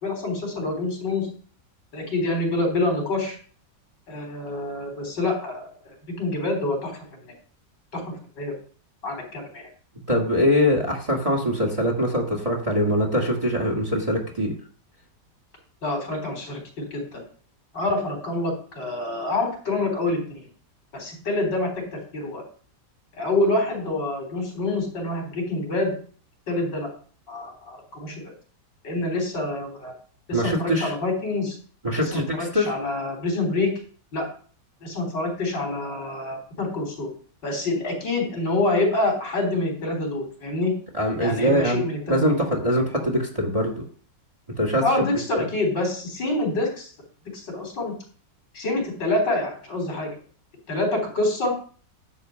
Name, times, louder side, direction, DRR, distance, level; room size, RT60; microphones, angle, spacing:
voice 1, 0.0-1.3 1.9-3.4 4.1-6.9 7.9-8.0 8.4-8.5 9.0-9.7 15.8-17.2 17.7-20.5 20.9-22.4 23.2-25.9 26.5-26.9 27.3-28.2 28.8-29.9 30.3-31.6 32.0-33.8 34.1-34.3 34.8-37.1 37.4-40.8 41.2-42.3 44.8-46.9 47.3-47.9 48.5-50.1 50.7-51.5, left 2 dB, 80° left, 0 dB, 4.2 m, -26 dB
voice 2, 10.1-14.5 30.3-30.9 31.8-32.7 40.9-43.8 44.6-44.8, equal, 20° right, 1 dB, 2.0 m, -23 dB
10.5 x 4.4 x 7.5 m, 0.42 s
omnidirectional pair, 1.9 m